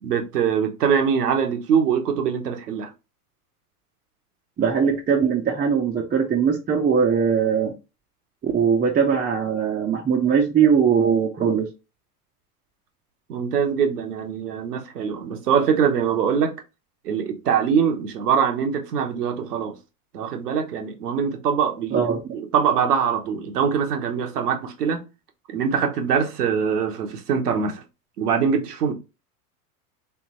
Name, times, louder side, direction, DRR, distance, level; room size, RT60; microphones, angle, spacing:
voice 1, 0.0-2.9 13.3-16.6 17.0-19.8 20.1-22.1 22.3-25.0 25.5-27.8 28.2-28.9, right 7 dB, 85° right, 1.1 m, -23 dB
voice 2, 4.6-7.7 8.4-11.7 21.9-22.2, right 7 dB, 20° right, 0.7 m, -20 dB
3.5 x 3.4 x 3.0 m
hypercardioid pair, 105°, 45 cm